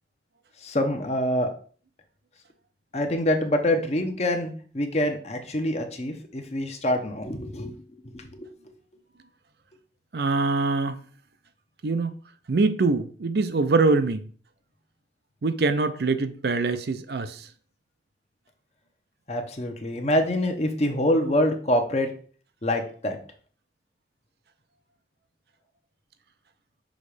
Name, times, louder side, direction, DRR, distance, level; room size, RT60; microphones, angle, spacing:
voice 1, 0.6-1.5 2.9-7.7 8.1-8.5 19.3-22.1 22.6-23.2, left 1 dB, 35° left, 0.9 m, -25 dB
voice 2, 10.1-11.0 11.8-12.1 12.5-14.3 15.4-17.5, right 3 dB, 65° right, 0.5 m, -24 dB
6.3 x 3.1 x 4.9 m
head